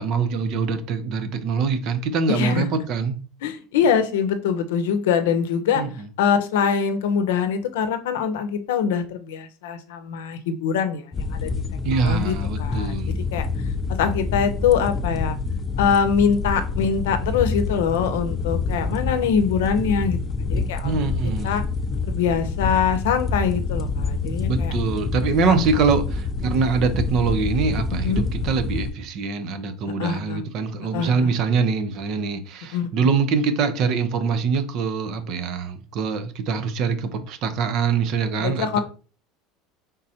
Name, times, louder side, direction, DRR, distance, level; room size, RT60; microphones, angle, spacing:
voice 1, 0.0-3.2 5.7-6.1 11.8-13.1 20.8-21.6 24.5-38.8, right 5 dB, 55° right, 0.6 m, -24 dB
voice 2, 2.3-2.7 3.4-5.8 6.2-11.5 11.9-12.9 13.3-13.5 13.9-15.4 15.8-20.9 21.4-21.6 22.1-24.7 25.4-25.7 28.0-28.3 30.0-30.4 30.9-31.3 32.7-33.1 38.4-38.8, left 7 dB, 85° left, 0.6 m, -23 dB
sound 1, 11.1-28.9, left 4 dB, 25° left, 0.5 m, -27 dB
4.2 x 3.7 x 2.7 m
supercardioid pair, 110°, 0 cm